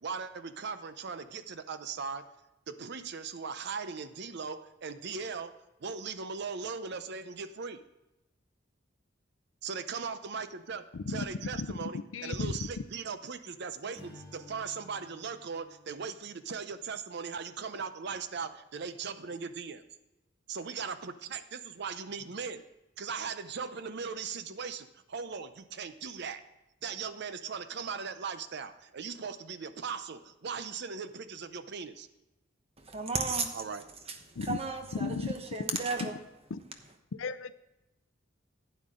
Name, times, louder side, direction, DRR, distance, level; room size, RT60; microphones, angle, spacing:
voice 1, 0.0-2.3 2.7-7.8 9.6-19.8 20.5-22.6 23.0-26.4 26.8-32.1 33.5-33.8, right 5 dB, 60° right, 0.6 m, -39 dB
Strum, 13.9-18.3, left 1 dB, 10° right, 2.8 m, -56 dB
voice 2, 32.8-33.6 34.1-36.1, right 4 dB, 30° right, 1.1 m, -34 dB
voice 3, 37.1-37.5, left 4 dB, 85° left, 0.5 m, -34 dB
11.5 x 9.3 x 3.7 m
head